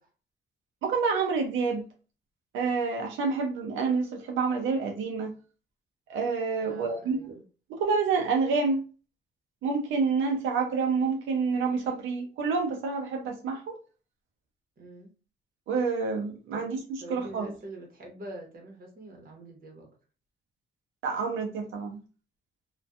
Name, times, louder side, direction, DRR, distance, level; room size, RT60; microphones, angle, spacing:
voice 1, 0.8-1.9 2.5-5.3 6.1-7.4 7.7-8.8 9.6-13.8 15.7-17.5 21.0-22.0, right 4 dB, 90° right, 2 dB, 0.4 m, -28 dB
voice 2, 6.6-7.4 14.8-15.1 16.5-16.7 17.0-19.9, right 1 dB, 50° right, 1 dB, 1.0 m, -45 dB
2.5 x 2.2 x 2.3 m, 0.36 s
cardioid pair, 100°, 20 cm